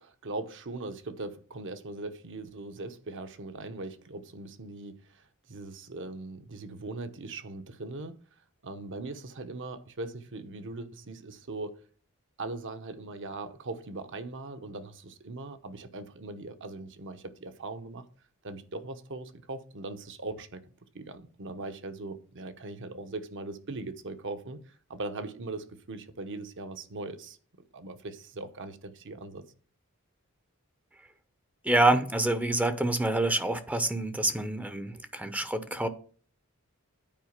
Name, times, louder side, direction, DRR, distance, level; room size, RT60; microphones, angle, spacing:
voice 1, 0.0-8.2 8.6-11.8 12.4-18.1 18.4-20.6 20.9-27.4 27.7-29.4, right 2 dB, 55° right, 1.0 m, -40 dB
voice 2, 31.6-35.9, right 2 dB, 5° right, 0.6 m, -27 dB
9.1 x 4.8 x 6.6 m
head